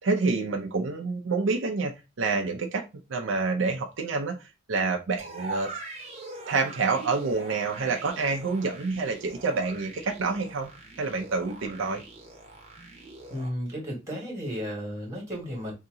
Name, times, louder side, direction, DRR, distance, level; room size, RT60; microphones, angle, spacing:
voice 1, 0.0-2.8 3.1-5.7 6.5-10.7 11.0-12.0, right 4 dB, 70° right, 3 dB, 0.6 m, -27 dB
sound 1, 5.2-13.5, right 2 dB, 30° right, 1.0 m, -42 dB
voice 2, 13.3-15.7, equal, 15° right, -2 dB, 1.4 m, -33 dB
2.8 x 2.7 x 3.7 m, 0.26 s
head